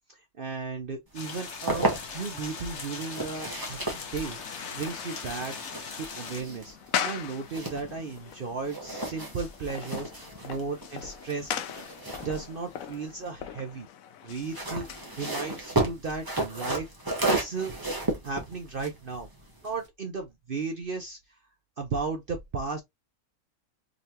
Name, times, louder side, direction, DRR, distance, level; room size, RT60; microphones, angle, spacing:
voice 1, 0.4-5.6 6.0-11.8 12.2-13.9 14.2-16.9 17.3-17.7 18.2-19.3 19.6-21.4 21.8-22.8, right 4 dB, 50° right, 0.8 m, -35 dB
sound 1, 1.1-6.4, left 5 dB, 55° left, 1.2 m, -40 dB
sound 2, 1.3-2.4 3.0-8.4 8.6-13.3 14.3-19.9, right 2 dB, 15° right, 1.1 m, -33 dB
sound 3, 3.2-15.6, left 9 dB, 75° left, 1.0 m, -40 dB
3.8 x 3.2 x 2.9 m
omnidirectional pair, 1.5 m